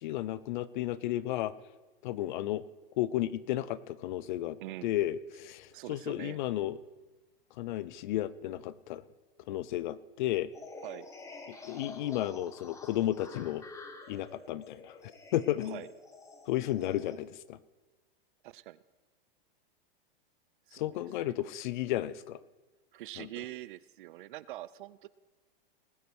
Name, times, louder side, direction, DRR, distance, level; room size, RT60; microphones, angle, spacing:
voice 1, 0.0-1.5 2.0-2.6 2.9-6.8 7.6-9.0 9.5-10.5 11.5-13.6 14.1-15.8 16.5-17.6 20.7-22.4 23.2-23.3, left 14 dB, 55° left, 19 dB, 0.6 m, -33 dB
voice 2, 4.6-4.9 5.7-6.4 10.8-11.1 15.6-15.9 18.4-18.8 20.7-21.3 22.9-25.1, right 16 dB, 60° right, 18 dB, 0.5 m, -44 dB
sound 1, 10.5-17.2, left 3 dB, 10° left, 0.9 m, -48 dB
19.5 x 8.3 x 4.6 m, 1.2 s
supercardioid pair, 150°, 29 cm